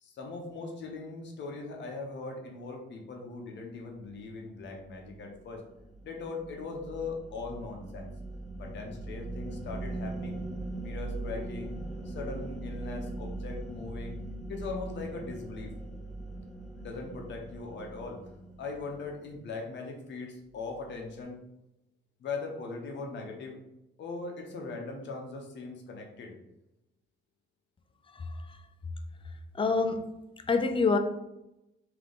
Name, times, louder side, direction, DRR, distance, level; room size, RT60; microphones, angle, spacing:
voice 1, 0.0-5.6 6.0-8.1 8.6-10.4 10.8-11.8 12.0-14.2 14.5-15.7 16.8-18.2 18.6-21.4 22.2-23.6 24.0-26.3, left 3 dB, 65° left, 0.9 m, -40 dB
sound 1, 4.8-19.3, right 2 dB, 5° left, 0.9 m, -40 dB
voice 2, 29.6-30.1 30.5-31.0, left 4 dB, 25° left, 0.4 m, -25 dB
3.8 x 2.9 x 3.5 m
cardioid pair, 90°, 20 cm